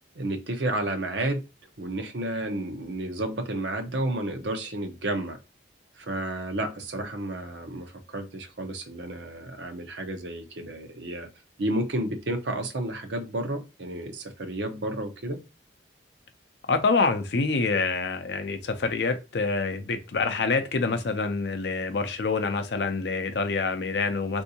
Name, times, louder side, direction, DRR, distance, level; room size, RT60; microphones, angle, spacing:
voice 1, 0.1-1.4 1.8-5.4 6.0-11.3 11.6-15.4, right 1 dB, 70° right, 0.7 m, -31 dB
voice 2, 16.7-24.4, left 4 dB, 65° left, 0.5 m, -26 dB
3.5 x 2.7 x 2.7 m
head